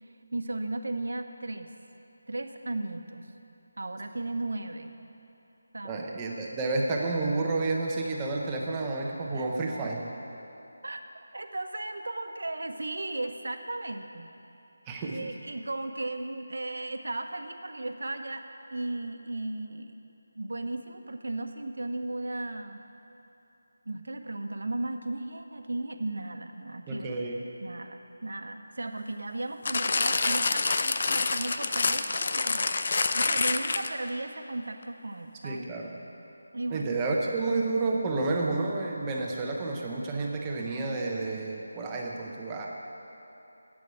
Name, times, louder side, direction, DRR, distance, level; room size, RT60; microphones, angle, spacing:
voice 1, 0.3-1.7 2.3-3.3 3.8-4.9 5.7-6.1 9.3-9.5 10.8-11.0 11.3-14.3 15.0-18.4 18.7-19.9 20.4-22.8 23.9-27.1 27.6-35.7 36.5-37.0 39.2-39.3, right 2 dB, 75° right, 6 dB, 0.9 m, -35 dB
voice 2, 5.8-10.1 14.9-15.3 26.9-27.4 35.4-35.9 36.7-42.7, right 3 dB, 10° right, -2 dB, 0.7 m, -30 dB
sound 1, 29.7-34.1 34.8-34.9, left 3 dB, 35° left, 0.4 m, -27 dB
8.3 x 7.8 x 8.9 m, 2.9 s
figure-of-eight pair, 180°, 0 cm